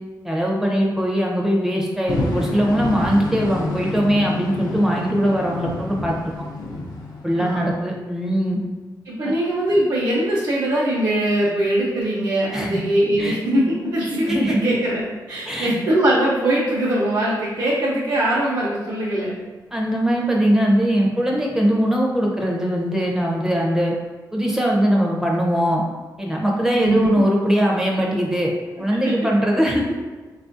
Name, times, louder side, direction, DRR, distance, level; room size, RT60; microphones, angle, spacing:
voice 1, 0.2-6.3 7.2-8.6 12.5-12.8 13.2-13.4 14.3-14.6 15.5-15.7 19.7-23.9 24.3-25.8 26.2-28.5 28.8-29.9, equal, 5° right, -1 dB, 0.5 m, -20 dB
sound 1, 2.1-7.8, left 2 dB, 70° left, 0.5 m, -29 dB
voice 2, 7.3-7.7 9.1-15.0 15.3-19.3 26.8-27.1 28.9-29.3, right 1 dB, 65° right, -7 dB, 0.6 m, -21 dB
4.2 x 2.4 x 2.5 m, 1.3 s
wide cardioid pair, 165°, 7 cm